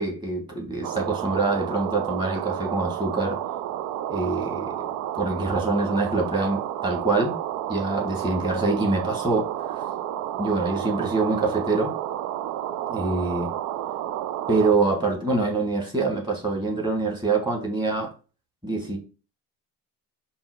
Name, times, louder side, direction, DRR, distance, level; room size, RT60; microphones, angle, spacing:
voice 1, 0.0-3.4 4.1-4.8 5.2-7.3 7.7-9.5 10.4-12.0 12.9-13.5 14.5-18.1 18.6-19.0, right 3 dB, 10° right, 2.3 m, -25 dB
sound 1, 0.8-14.7, right 12 dB, 50° right, 0.5 m, -31 dB
5.3 x 2.2 x 4.6 m
figure-of-eight pair, 60°, 37 cm